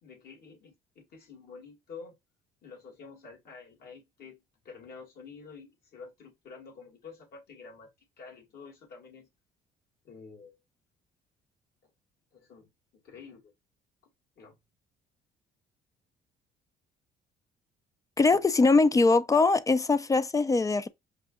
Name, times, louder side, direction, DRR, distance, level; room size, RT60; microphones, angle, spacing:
voice 1, 0.0-2.1 2.6-7.9 8.2-9.3 10.0-10.6 12.3-13.5 14.4-14.6, left 5 dB, 65° left, 2.3 m, -49 dB
voice 2, 18.2-20.9, left 3 dB, 20° left, 0.3 m, -22 dB
5.3 x 2.7 x 2.4 m
cardioid pair, 110°, 17 cm